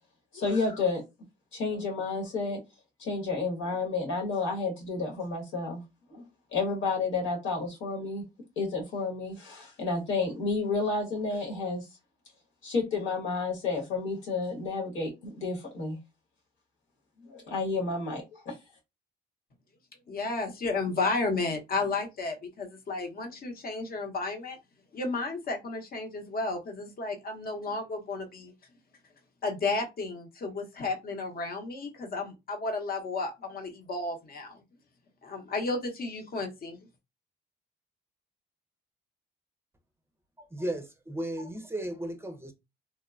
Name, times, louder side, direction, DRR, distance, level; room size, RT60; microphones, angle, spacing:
voice 1, 0.3-1.0 1.5-2.6 3.0-5.8 6.1-6.2 6.5-8.2 8.6-11.9 12.6-16.0 17.2-18.6, left 3 dB, 80° left, 1.3 m, -31 dB
voice 2, 20.1-24.6 24.9-28.5 29.4-34.6 35.2-36.8, left 3 dB, 50° left, 0.8 m, -33 dB
voice 3, 40.4-42.5, right 1 dB, 10° right, 0.5 m, -35 dB
3.0 x 2.1 x 2.4 m
cardioid pair, 90°, 20 cm